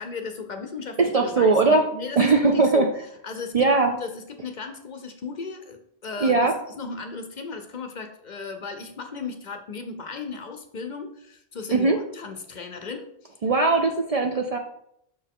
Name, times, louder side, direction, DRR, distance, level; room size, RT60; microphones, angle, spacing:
voice 1, 0.0-2.9 3.2-6.4 6.8-13.1, left 4 dB, 50° left, 6 dB, 0.6 m, -36 dB
voice 2, 1.0-1.9 2.2-2.9 3.5-3.9 6.2-6.5 11.7-12.0 13.4-14.6, right 3 dB, 50° right, 3 dB, 0.5 m, -20 dB
6.2 x 4.4 x 3.6 m, 0.74 s
omnidirectional pair, 1.1 m